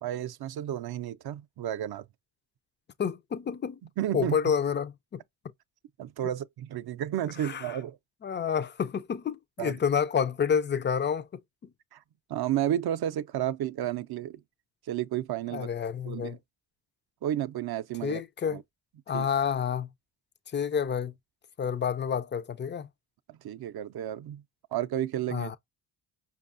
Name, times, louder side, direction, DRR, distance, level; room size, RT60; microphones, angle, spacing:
voice 1, 0.0-2.1 3.8-4.4 6.0-8.0 9.6-9.8 11.9-12.0 12.3-14.4 14.9-15.7 16.0-16.4 17.2-18.6 19.1-19.3 23.3-24.4 24.7-25.5, right 11 dB, 50° right, 0.5 m, -32 dB
voice 2, 3.0-3.8 4.1-5.2 7.4-7.8 8.2-11.3 11.6-11.7 15.5-16.4 18.0-18.6 19.1-19.9 20.5-21.1 21.6-22.9 25.3-25.6, left 7 dB, 25° left, 0.3 m, -29 dB
5.2 x 2.3 x 2.5 m
cardioid pair, 100°, 48 cm